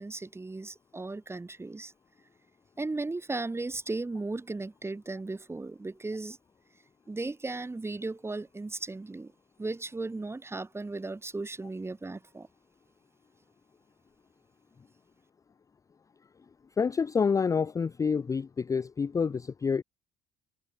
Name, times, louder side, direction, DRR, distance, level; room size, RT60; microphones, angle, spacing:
voice 1, 0.0-1.9 2.8-6.4 7.1-9.3 9.6-12.5, right 3 dB, 15° right, 2.2 m, -36 dB
voice 2, 16.8-19.8, left 5 dB, 20° left, 0.4 m, -28 dB
cardioid pair, 110°, 17 cm